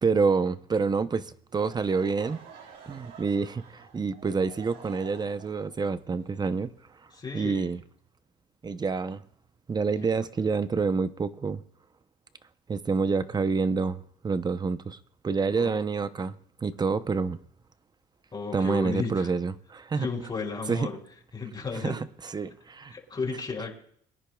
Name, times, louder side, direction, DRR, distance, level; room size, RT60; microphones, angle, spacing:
voice 1, 0.0-2.4 2.9-6.7 7.3-7.8 8.6-9.2 9.7-11.6 12.7-15.0 15.2-16.3 16.6-17.4 18.5-20.1 20.7-20.9 21.8-22.9, right 4 dB, 25° right, 0.7 m, -27 dB
Laughter / Crowd, 1.5-7.4, right 6 dB, 85° right, 3.8 m, -50 dB
voice 2, 7.1-7.7 10.0-10.1 15.5-15.7 18.3-19.3 20.0-21.0 21.3-22.0 22.9-23.8, left 4 dB, 25° left, 3.5 m, -33 dB
23.5 x 10.0 x 2.3 m
cardioid pair, 110°, 17 cm